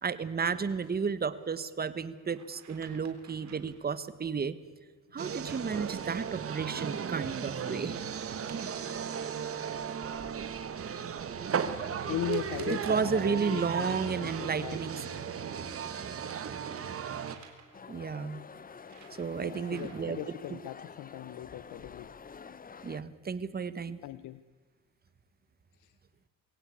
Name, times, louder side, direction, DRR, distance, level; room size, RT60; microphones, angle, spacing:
voice 1, 0.0-4.5 5.1-8.0 12.9-15.0 17.9-18.4 19.2-20.2 22.8-24.0, right 5 dB, 30° right, 15 dB, 1.2 m, -32 dB
sound 1, 1.3-1.6 2.3-3.8 6.7-7.6 8.3-9.9 11.3-13.0 15.1-17.9 18.5-20.2, right 6 dB, 65° right, 3.7 m, -56 dB
sound 2, 5.2-17.4, right 7 dB, 50° right, 1.5 m, -35 dB
voice 2, 12.1-14.8 19.4-22.1 23.9-24.4 25.7-26.0, left 13 dB, 80° left, 15 dB, 0.8 m, -39 dB
sound 3, 17.7-23.0, left 6 dB, 30° left, 0.8 m, -48 dB
22.0 x 17.0 x 8.6 m, 1.4 s
cardioid pair, 90°, 30 cm